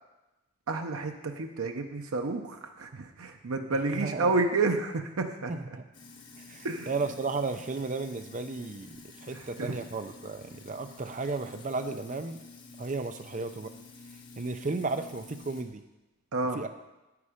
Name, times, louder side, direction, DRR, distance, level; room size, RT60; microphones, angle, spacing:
voice 1, 0.7-5.5 6.6-6.9 9.3-9.8 16.3-16.6, right 3 dB, 80° right, 4 dB, 0.7 m, -30 dB
voice 2, 3.9-4.3 5.5-5.9 6.4-12.4 12.8-13.7 14.4-15.8 16.5-16.7, right 3 dB, 35° right, 8 dB, 0.5 m, -34 dB
Sink (filling or washing), 5.9-15.6, left 3 dB, 55° left, 1.5 m, -50 dB
9.6 x 8.4 x 5.0 m, 1.0 s
head